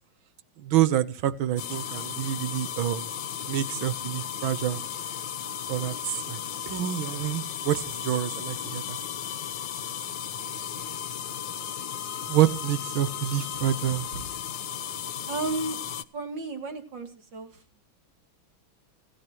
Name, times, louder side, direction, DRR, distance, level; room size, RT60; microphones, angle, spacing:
voice 1, 0.6-3.1 3.5-4.8 5.7-6.4 6.7-9.0 12.3-14.1, right 12 dB, 80° right, 15 dB, 1.8 m, -27 dB
sound 1, 1.6-16.0, left 9 dB, 70° left, 1.6 m, -35 dB
voice 2, 15.3-15.8 16.1-17.5, right 3 dB, 65° right, 6 dB, 3.4 m, -33 dB
30.0 x 11.0 x 3.0 m, 0.35 s
omnidirectional pair, 2.2 m